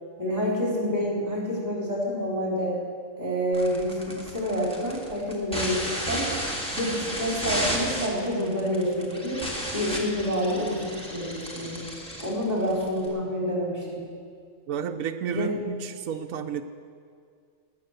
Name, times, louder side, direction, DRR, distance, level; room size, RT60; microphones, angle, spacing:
voice 1, 0.2-2.8 3.2-6.3 6.7-9.4 9.7-11.9 12.2-14.1 15.3-15.5, equal, 30° right, -4 dB, 4.2 m, -28 dB
sound 1, 3.5-13.1, equal, 5° left, 1.9 m, -33 dB
voice 2, 14.7-16.6, right 7 dB, 80° right, 5 dB, 1.0 m, -31 dB
19.0 x 7.7 x 6.6 m, 2.2 s
omnidirectional pair, 1.4 m